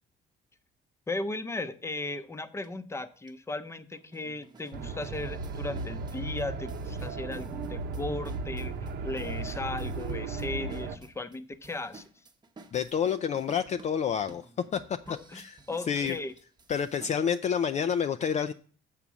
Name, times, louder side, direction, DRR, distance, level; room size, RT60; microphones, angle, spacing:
voice 1, 1.1-12.0 15.1-16.3, left 2 dB, 15° left, 11 dB, 0.8 m, -36 dB
sound 1, 2.6-2.7 3.3-3.4 3.9-17.4, right 3 dB, 25° right, 1.0 m, -53 dB
sound 2, 4.7-11.0, right 3 dB, 70° right, 0.9 m, -35 dB
voice 2, 12.7-14.4 14.7-15.0 15.3-15.6 15.9-16.2 16.7-18.5, left 7 dB, 45° left, 9 dB, 0.4 m, -28 dB
7.1 x 6.6 x 6.1 m, 0.42 s
cardioid pair, 95°, 17 cm